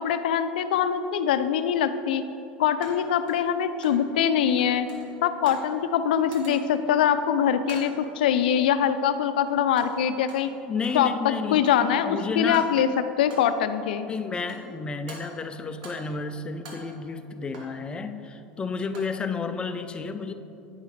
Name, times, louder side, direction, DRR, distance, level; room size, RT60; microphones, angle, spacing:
voice 1, 0.0-2.3 2.6-4.9 5.2-10.5 10.9-12.9 13.2-14.1, left 9 dB, 85° left, 11 dB, 0.4 m, -23 dB
sound 1, 0.6-0.7 2.8-4.1 4.4-5.8 6.1-6.9 7.6-8.1 8.8-9.2 9.5-11.1 11.4-12.0 12.4-12.9 13.3-13.7 14.3-14.8 15.1-16.2 16.5-17.8 18.7-19.2, right 2 dB, 80° right, 1.4 m, -46 dB
voice 2, 10.7-12.7 14.0-20.3, left 4 dB, 20° left, 9 dB, 0.4 m, -31 dB
9.1 x 5.6 x 3.2 m, 2.8 s
supercardioid pair, 110°, 5 cm